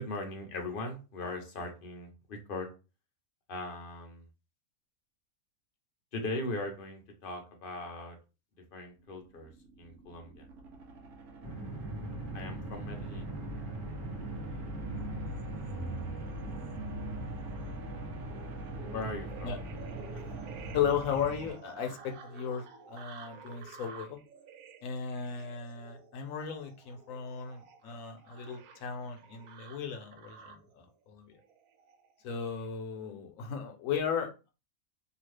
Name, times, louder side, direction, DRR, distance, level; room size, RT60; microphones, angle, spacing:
voice 1, 0.0-2.7 3.5-4.3 6.1-8.2 8.7-9.5 9.8-10.5 12.3-13.3 18.9-19.5, left 2 dB, 50° left, 3 dB, 0.7 m, -39 dB
sound 1, 8.9-22.0, right 3 dB, 65° right, 1.0 m, -48 dB
sound 2, 11.4-21.5, right 1 dB, 15° right, 0.9 m, -41 dB
sound 3, 14.8-30.7 31.4-32.1 32.5-32.7, right 3 dB, 85° right, 1.1 m, -48 dB
voice 2, 20.7-24.2 24.8-31.3 32.2-34.5, left 7 dB, 70° left, 4 dB, 1.0 m, -36 dB
2.9 x 2.4 x 3.1 m, 0.31 s
omnidirectional pair, 1.5 m